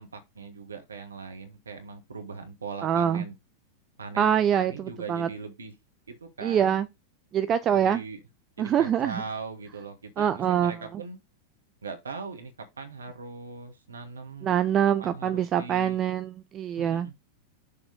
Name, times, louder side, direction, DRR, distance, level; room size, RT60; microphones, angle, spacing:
voice 1, 0.0-3.3 4.0-5.7 6.1-6.8 7.7-8.2 8.6-11.2 11.8-12.5 12.8-16.0 16.8-17.1, right 4 dB, 75° right, 1.4 m, -40 dB
voice 2, 2.8-3.2 4.2-5.3 6.4-6.9 7.3-8.0 8.6-9.2 10.2-10.7 14.4-17.1, right 9 dB, 30° right, 0.4 m, -24 dB
6.9 x 3.4 x 5.2 m
figure-of-eight pair, 90°, 0 cm